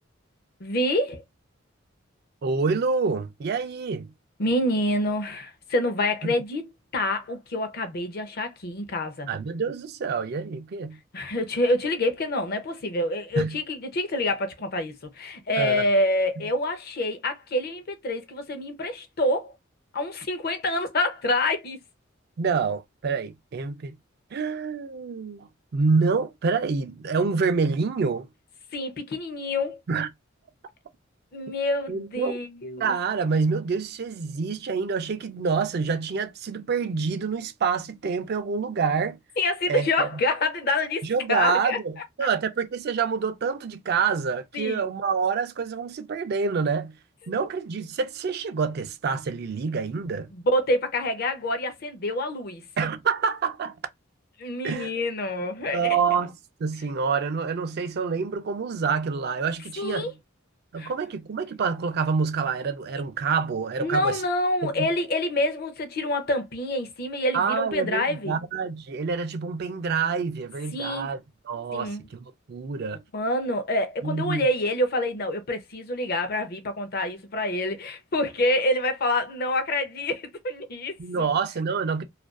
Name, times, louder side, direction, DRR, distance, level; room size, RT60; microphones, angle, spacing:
voice 1, 0.6-1.2 4.4-6.7 6.9-9.3 11.1-19.5 19.9-21.8 28.7-29.8 31.3-32.9 39.4-41.8 42.2-42.3 44.5-44.8 50.3-52.6 54.4-56.0 59.8-60.1 60.8-60.9 63.8-68.3 70.7-71.1 71.7-72.0 73.1-81.3, left 1 dB, 50° left, 0.6 m, -27 dB
voice 2, 2.4-4.1 6.2-6.3 9.3-11.0 13.4-13.6 15.6-15.8 22.4-24.0 24.3-28.3 29.9-30.1 31.9-32.4 32.8-39.2 39.7-40.1 41.0-47.0 47.3-50.3 52.8-53.8 54.6-54.9 55.7-56.3 56.6-60.2 60.7-64.2 64.6-64.9 67.3-71.2 71.5-73.0 74.0-74.5 81.0-82.1, right 5 dB, 55° right, 0.4 m, -27 dB
2.4 x 2.2 x 2.3 m
head